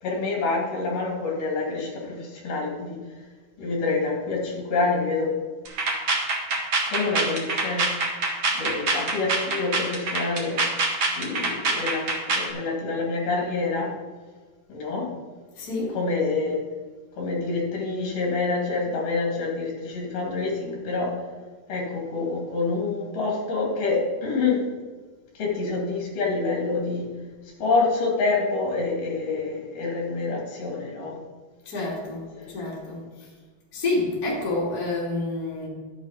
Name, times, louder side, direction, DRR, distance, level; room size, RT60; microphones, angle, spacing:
voice 1, 0.0-3.0 3.6-5.3 6.9-7.8 8.5-10.6 11.1-13.9 14.7-15.0 15.9-16.6 17.2-21.1 21.7-24.6 25.4-27.1 27.6-31.2 32.3-32.5, left 3 dB, 40° left, -3 dB, 3.5 m, -27 dB
sound 1, 5.6-12.5, right 3 dB, 50° right, 1.4 m, -25 dB
voice 2, 15.6-15.9 31.6-33.0 33.7-35.7, left 2 dB, 25° left, -6 dB, 2.9 m, -28 dB
11.5 x 7.9 x 5.1 m, 1.4 s
omnidirectional pair, 4.8 m